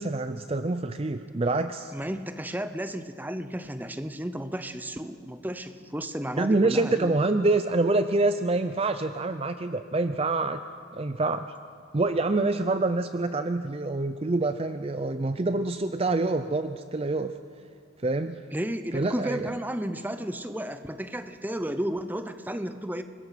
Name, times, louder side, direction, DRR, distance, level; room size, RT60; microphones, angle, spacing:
voice 1, 0.0-1.9 6.4-10.6 10.9-11.5 11.9-17.3 18.0-18.4 18.9-19.5, right 2 dB, 30° right, 10 dB, 0.5 m, -26 dB
voice 2, 1.9-7.1 18.5-23.0, equal, 10° right, 10 dB, 0.8 m, -33 dB
25.5 x 21.0 x 5.8 m, 2.3 s
head